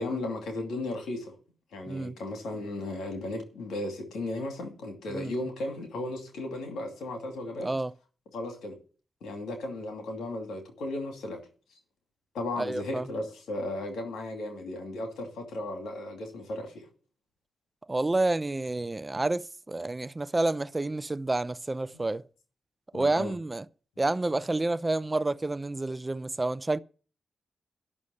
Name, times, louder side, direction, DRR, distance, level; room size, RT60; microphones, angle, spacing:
voice 1, 0.0-1.3 1.7-7.7 8.3-8.8 9.2-11.4 12.3-16.8 21.9-22.0 22.9-23.3, left 2 dB, 85° left, 2.6 m, -35 dB
voice 2, 7.6-7.9 12.6-13.1 17.9-22.2 22.9-23.6 24.0-26.8, right 2 dB, 25° right, 0.5 m, -29 dB
11.0 x 6.3 x 8.6 m
cardioid pair, 50°, 0 cm